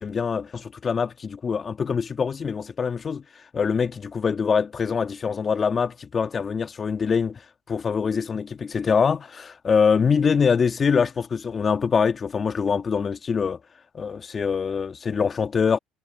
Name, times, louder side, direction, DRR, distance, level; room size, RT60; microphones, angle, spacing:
voice 1, 0.0-3.2 3.5-7.4 7.7-13.6 13.9-15.8, left 6 dB, 35° left, 1.8 m, -24 dB
supercardioid pair, 80°, 0 cm